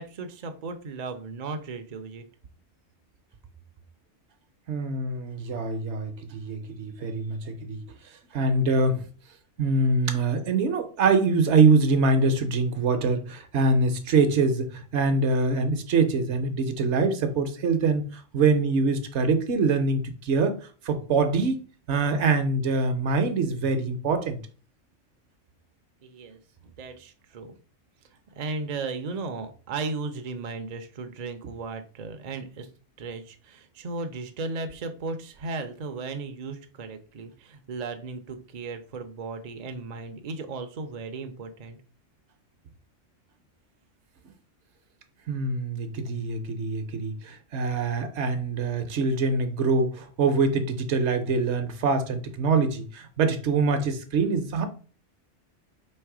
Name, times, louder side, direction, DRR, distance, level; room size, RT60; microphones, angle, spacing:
voice 1, 0.0-2.2 26.0-27.5 28.4-32.7 33.0-41.8, right 3 dB, 50° right, 0.5 m, -36 dB
voice 2, 4.7-7.8 8.3-9.0 9.6-24.4 45.3-54.7, right 3 dB, 70° right, 0.9 m, -24 dB
3.2 x 3.2 x 4.7 m
omnidirectional pair, 1.3 m